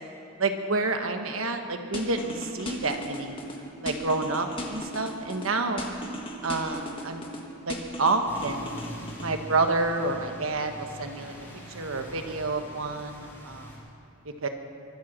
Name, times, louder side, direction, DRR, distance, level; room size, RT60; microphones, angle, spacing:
voice 1, 0.4-3.4 3.8-5.9 6.4-7.2 7.6-8.7 9.2-11.3 11.7-13.7 14.4-14.5, right 3 dB, 90° right, 6 dB, 1.3 m, -29 dB
sound 1, 1.9-3.6 3.9-5.5 5.8-7.4 7.7-9.3, left 1 dB, 25° left, 1.7 m, -37 dB
sound 2, 8.3-13.8, equal, 10° left, 4.2 m, -43 dB
23.5 x 8.0 x 7.4 m, 2.6 s
head